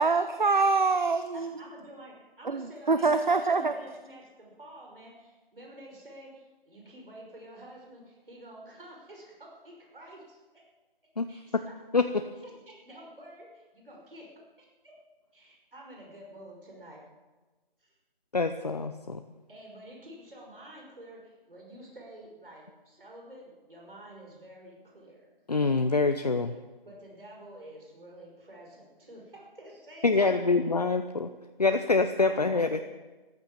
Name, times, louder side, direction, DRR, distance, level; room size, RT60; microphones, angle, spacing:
voice 1, 0.0-1.5 2.5-3.7, right 4 dB, 50° right, 10 dB, 0.8 m, -25 dB
voice 2, 1.3-10.6 11.3-11.7 12.4-14.7 15.3-17.0 17.8-17.9 19.5-25.3 26.9-30.6 32.2-32.8, right 1 dB, 70° right, -1 dB, 5.7 m, -49 dB
voice 3, 11.9-12.2 18.3-19.2 25.5-26.6 30.0-31.3 31.6-32.8, left 3 dB, 45° left, 8 dB, 0.7 m, -25 dB
14.5 x 12.0 x 7.4 m, 1.2 s
figure-of-eight pair, 170°, 29 cm